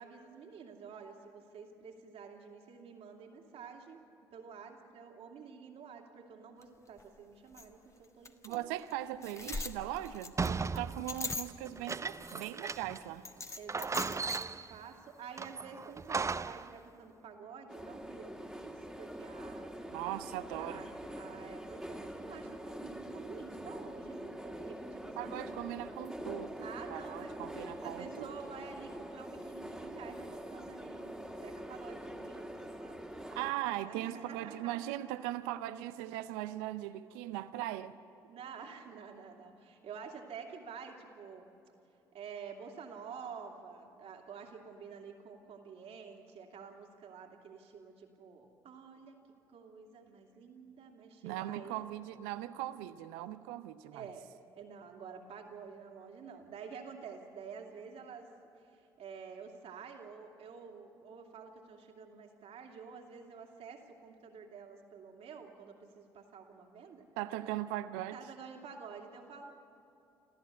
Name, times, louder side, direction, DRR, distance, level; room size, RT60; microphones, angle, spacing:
voice 1, 0.0-4.0 4.3-8.7 10.7-10.8 13.6-19.7 20.6-25.6 26.6-27.3 27.8-34.9 38.3-41.5 42.1-49.2 49.5-51.8 53.9-54.3 54.6-58.3 58.6-67.1 68.1-69.5, right 6 dB, 60° right, 2 dB, 2.6 m, -49 dB
sound 1, 6.6-6.7 7.0-7.1 7.6-7.7 8.2-8.6 8.9-9.0 9.2-11.9 12.2-12.8 13.2-14.4, left 3 dB, 25° left, 1.5 m, -41 dB
voice 2, 8.4-13.3 19.9-20.8 25.2-28.3 33.4-38.0 51.2-54.1 67.2-68.2, right 14 dB, 75° right, 13 dB, 0.6 m, -39 dB
sound 2, 10.4-13.1 13.4-13.5 13.7-14.8 15.4-16.7, right 4 dB, 25° right, 0.6 m, -37 dB
sound 3, 17.7-33.5, right 1 dB, 5° right, 2.2 m, -44 dB
28.0 x 14.0 x 8.3 m, 2.8 s
hypercardioid pair, 50°, 12 cm